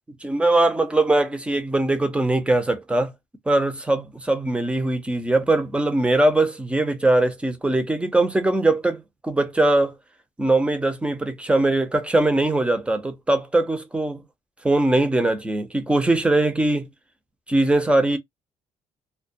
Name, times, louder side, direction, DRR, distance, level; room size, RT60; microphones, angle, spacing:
voice 1, 0.2-3.1 3.5-9.9 10.4-14.2 14.6-16.9 17.5-18.2, right 2 dB, 10° right, 0.7 m, -21 dB
2.3 x 2.2 x 2.6 m
cardioid pair, 115°, 12 cm